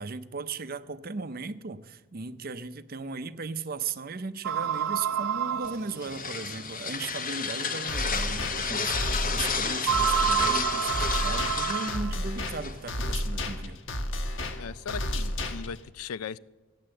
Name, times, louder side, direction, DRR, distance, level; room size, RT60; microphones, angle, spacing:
voice 1, 0.0-13.8, right 4 dB, 45° right, 13 dB, 0.6 m, -37 dB
sound 1, 4.4-6.5 7.2-7.3 7.8-7.9 9.8-12.3, right 8 dB, 90° right, 0.6 m, -28 dB
sound 2, 5.6-13.1, left 5 dB, 40° left, 1.0 m, -32 dB
sound 3, 7.9-15.9, left 1 dB, 60° left, 1.3 m, -32 dB
voice 2, 14.6-16.4, left 6 dB, 90° left, 19 dB, 0.4 m, -38 dB
15.0 x 10.0 x 7.7 m, 1.2 s
head